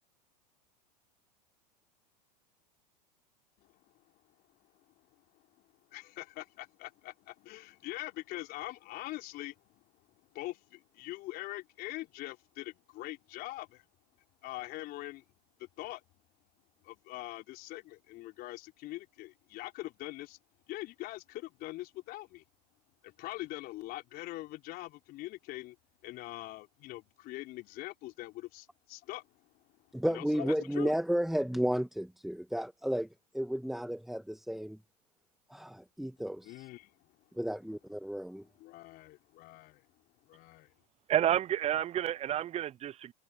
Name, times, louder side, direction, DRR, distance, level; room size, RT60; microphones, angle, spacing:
voice 1, 3.6-4.0 4.6-13.8 14.4-15.2 15.6-16.0 16.8-20.4 20.7-22.4 23.0-25.8 26.0-29.8 30.1-31.0 36.4-37.1 38.0-38.2 38.5-39.9 40.3-40.7, left 17 dB, 45° left, 3.9 m, -43 dB
voice 2, 29.9-33.1 33.3-34.8 35.5-36.7 37.4-38.4, equal, ahead, 1.9 m, -33 dB
voice 3, 41.1-43.1, right 11 dB, 30° right, 0.9 m, -30 dB
hypercardioid pair, 90°, 21 cm